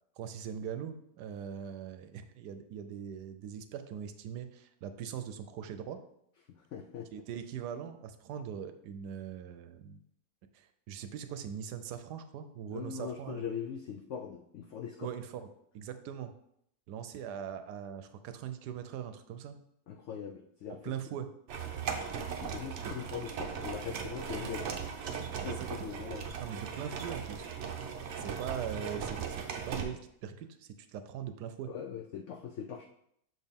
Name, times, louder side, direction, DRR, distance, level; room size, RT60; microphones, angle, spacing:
voice 1, 0.2-6.0 7.1-10.0 10.5-13.4 15.0-15.5 15.7-16.3 16.9-19.6 20.8-21.3 22.8-22.9 25.4-25.7 26.4-27.5 28.2-31.7, right 8 dB, 80° right, 9 dB, 1.1 m, -41 dB
voice 2, 6.5-7.1 12.7-15.1 19.9-20.9 22.4-24.7 25.2-26.2 31.7-32.9, left 8 dB, 85° left, 4 dB, 0.6 m, -41 dB
sound 1, 21.5-29.8, right 7 dB, 60° right, 0.8 m, -38 dB
6.4 x 4.3 x 3.6 m, 0.73 s
omnidirectional pair, 1.8 m